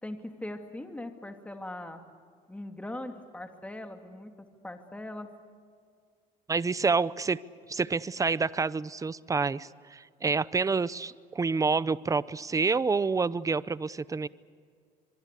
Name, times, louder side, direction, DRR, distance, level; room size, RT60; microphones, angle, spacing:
voice 1, 0.0-2.0 2.5-5.3, left 1 dB, 10° left, 6 dB, 2.5 m, -40 dB
voice 2, 6.5-7.4 7.7-14.3, right 4 dB, 20° right, 18 dB, 0.7 m, -28 dB
24.0 x 24.0 x 8.3 m, 2.1 s
cardioid pair, 110°, 17 cm